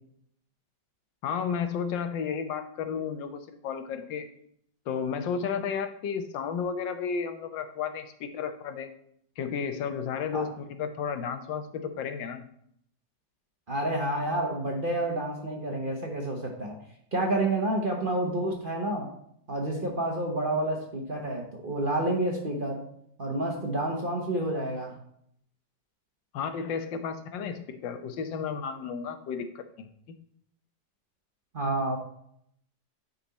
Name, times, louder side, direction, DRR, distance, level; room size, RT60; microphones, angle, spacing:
voice 1, 1.2-4.3 4.9-8.9 9.4-12.4 26.3-29.9, left 6 dB, 85° left, 8 dB, 1.5 m, -33 dB
voice 2, 13.7-16.8 17.1-19.1 19.5-22.8 23.2-25.0 31.5-32.0, right 1 dB, 35° right, 0 dB, 1.0 m, -29 dB
9.5 x 4.2 x 4.1 m, 0.69 s
omnidirectional pair, 2.0 m